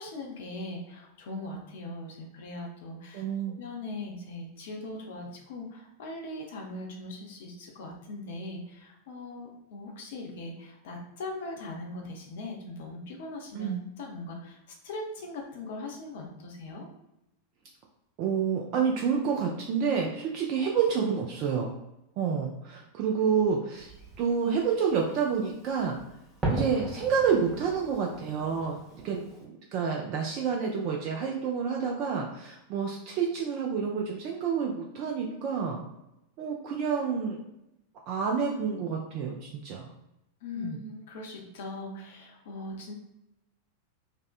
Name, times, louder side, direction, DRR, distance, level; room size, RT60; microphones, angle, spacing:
voice 1, 0.0-14.6 14.8-16.9 40.4-43.0, left 2 dB, 55° left, 1 dB, 0.5 m, -40 dB
voice 2, 3.1-3.6 13.5-13.8 18.2-21.8 22.2-23.9 24.2-26.0 26.5-28.8 29.0-35.8 36.4-37.4 38.1-39.9 40.6-40.8, right 6 dB, 40° right, 0 dB, 0.3 m, -29 dB
Fireworks, 23.8-29.5, right 2 dB, 10° right, 0.7 m, -38 dB
2.5 x 2.1 x 2.3 m, 0.86 s
figure-of-eight pair, 90°, 0 cm